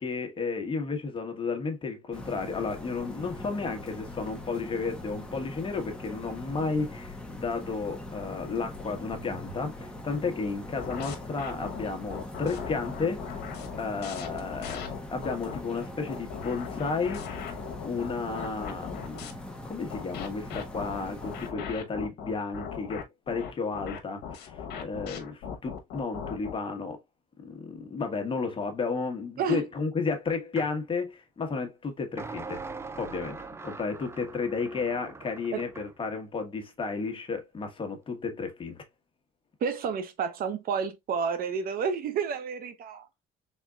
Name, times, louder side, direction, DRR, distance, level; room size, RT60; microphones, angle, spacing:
voice 1, 0.0-13.3 13.8-17.5 17.8-19.3 19.6-27.0 27.4-32.6 33.0-38.8, left 4 dB, 30° left, 1.2 m, -33 dB
sound 1, 2.1-21.5, left 1 dB, 5° left, 1.0 m, -42 dB
sound 2, 10.8-15.6 16.1-19.3 19.9-26.6, left 7 dB, 80° left, 1.0 m, -39 dB
sound 3, 30.6-30.8 32.2-35.9, right 4 dB, 15° right, 0.4 m, -42 dB
voice 2, 39.6-43.1, right 6 dB, 60° right, 0.7 m, -30 dB
4.3 x 3.6 x 2.3 m
cardioid pair, 110°, 17 cm